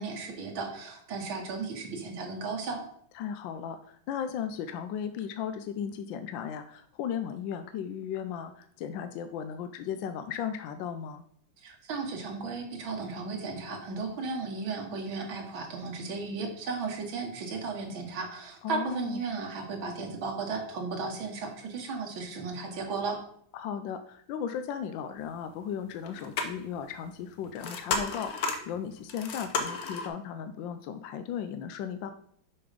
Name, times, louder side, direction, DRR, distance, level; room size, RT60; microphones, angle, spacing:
voice 1, 0.0-2.8 11.6-23.2, right 4 dB, 80° right, 2 dB, 2.1 m, -35 dB
voice 2, 3.1-11.2 18.6-19.2 23.5-32.1, left 8 dB, 75° left, 9 dB, 1.2 m, -36 dB
sound 1, 26.0-30.1, left 4 dB, 55° left, 1.2 m, -33 dB
7.0 x 5.2 x 5.0 m, 0.64 s
omnidirectional pair, 2.1 m